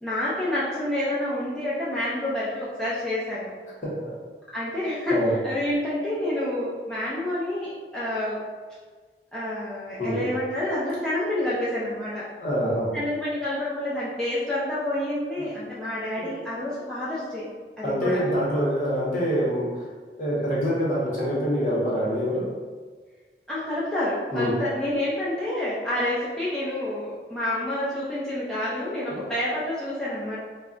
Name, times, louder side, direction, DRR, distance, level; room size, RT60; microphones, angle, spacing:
voice 1, 0.0-3.5 4.5-8.4 9.3-12.3 12.9-17.5 17.8-18.2 23.5-30.4, left 1 dB, 5° left, -10 dB, 0.4 m, -28 dB
voice 2, 3.8-4.1 5.1-5.3 10.0-10.3 12.4-12.9 16.2-16.3 17.8-19.7 20.2-22.5 24.3-24.5 29.1-29.2, equal, 45° left, -6 dB, 0.8 m, -25 dB
2.3 x 2.1 x 3.7 m, 1.4 s
head